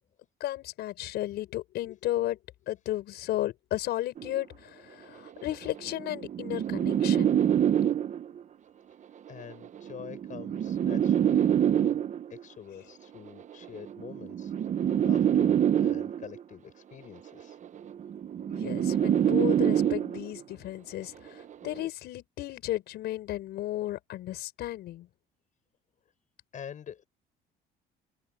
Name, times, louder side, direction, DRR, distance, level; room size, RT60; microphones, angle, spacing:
voice 1, 0.4-2.4 2.7-7.3 18.4-25.1, left 14 dB, 75° left, 6.0 m, -34 dB
sound 1, 4.2-4.4 5.3-8.4 9.4-12.4 13.4-16.4 17.4-20.4 21.4-21.8, right 9 dB, 45° right, 1.2 m, -26 dB
voice 2, 9.3-12.0 12.3-14.5 15.0-17.6 26.5-27.1, left 8 dB, 50° left, 8.0 m, -46 dB
cardioid pair, 110°, 17 cm